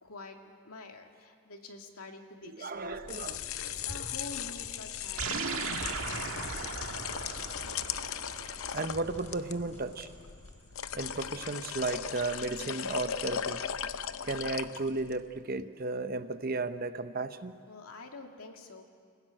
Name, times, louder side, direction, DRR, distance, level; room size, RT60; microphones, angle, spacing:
voice 1, 0.0-6.8 17.7-18.8, left 3 dB, 85° left, 3 dB, 2.3 m, -48 dB
voice 2, 2.4-3.4 8.7-10.1 10.9-13.6 14.2-17.6, right 3 dB, 40° right, 11 dB, 0.8 m, -34 dB
sound 1, 2.9-15.2, left 9 dB, 70° left, 0.7 m, -38 dB
sound 2, 3.3-11.7, equal, 30° left, 7.1 m, -52 dB
sound 3, 5.2-9.8, right 4 dB, 70° right, 1.8 m, -38 dB
29.0 x 16.5 x 9.0 m, 2.1 s
head